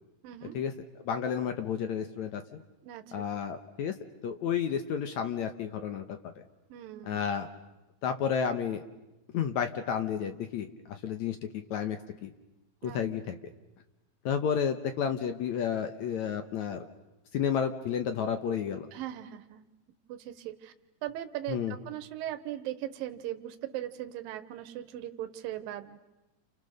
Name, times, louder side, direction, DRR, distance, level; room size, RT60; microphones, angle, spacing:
voice 1, 0.2-0.6 2.8-3.2 6.7-7.2 12.8-13.0 18.9-19.7 20.1-20.7 21.0-26.0, right 12 dB, 75° right, 9 dB, 2.8 m, -39 dB
voice 2, 1.1-2.4 3.1-3.9 4.2-6.2 7.1-7.5 8.0-8.8 9.3-11.4 11.7-12.3 12.9-13.4 14.3-16.9 17.3-18.9 21.5-21.7, left 7 dB, 65° left, 8 dB, 2.0 m, -31 dB
29.5 x 29.0 x 6.6 m, 1.0 s
omnidirectional pair, 4.3 m